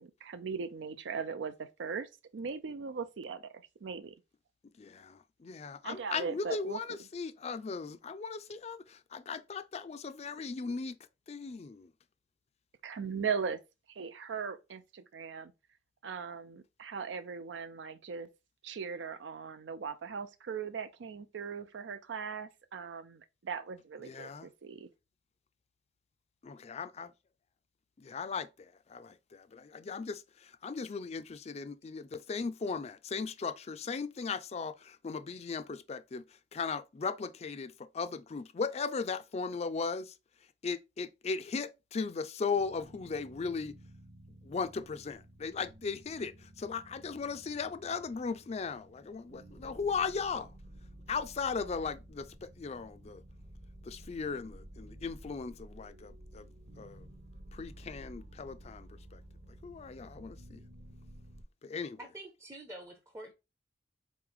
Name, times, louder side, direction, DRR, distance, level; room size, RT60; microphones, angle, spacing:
voice 1, 0.0-3.4 3.8-4.1 5.8-7.0 12.8-13.6 13.9-15.5 16.0-18.3 18.6-24.9, right 6 dB, 90° right, 0.5 m, -39 dB
voice 2, 4.8-11.0 11.3-11.9 24.0-24.5 26.4-27.1 28.0-36.2 36.5-40.1 40.6-43.8 44.4-50.5 51.1-53.2 53.8-56.5 56.8-57.1 57.5-59.2 59.6-60.6 61.6-62.0, left 5 dB, 35° left, 0.4 m, -37 dB
sound 1, 42.5-61.4, right 1 dB, 45° right, 0.8 m, -53 dB
voice 3, 62.0-63.3, right 1 dB, 15° right, 0.6 m, -47 dB
3.8 x 3.1 x 3.7 m
head